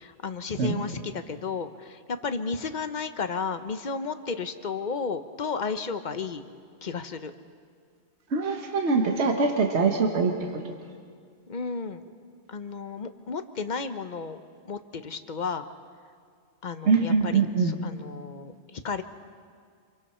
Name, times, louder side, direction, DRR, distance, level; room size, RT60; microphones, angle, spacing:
voice 1, 0.0-6.4 6.8-7.3 11.5-12.0 12.5-15.7 16.6-19.0, left 5 dB, 45° left, 10 dB, 0.9 m, -33 dB
voice 2, 8.3-10.6 16.8-17.7, right 4 dB, 70° right, 3 dB, 1.5 m, -23 dB
27.0 x 24.0 x 4.4 m, 2.1 s
omnidirectional pair, 1.2 m